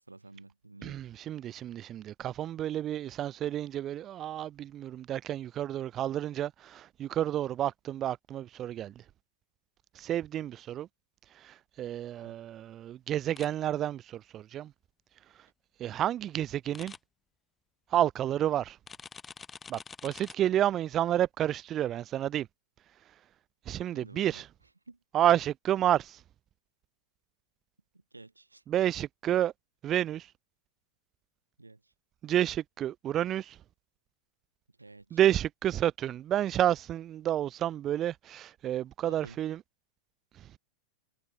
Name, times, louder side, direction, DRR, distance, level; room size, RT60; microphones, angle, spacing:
voice 1, 0.1-1.0 12.2-12.4 23.9-24.4 24.9-25.0 27.9-28.6 31.6-31.9 34.8-35.2 39.1-39.4, right 2 dB, 80° right, 4.2 m, -52 dB
voice 2, 0.8-9.0 9.9-10.9 11.3-14.7 15.8-16.9 17.9-18.8 19.7-22.5 23.7-24.5 25.1-26.2 28.7-29.5 29.8-30.3 32.2-33.6 35.1-39.6 40.4-40.5, right 11 dB, 30° right, 1.1 m, -30 dB
sound 1, 13.4-13.5 16.7-17.0 18.9-20.3, left 5 dB, 15° left, 2.0 m, -46 dB
figure-of-eight pair, 90°, 0 cm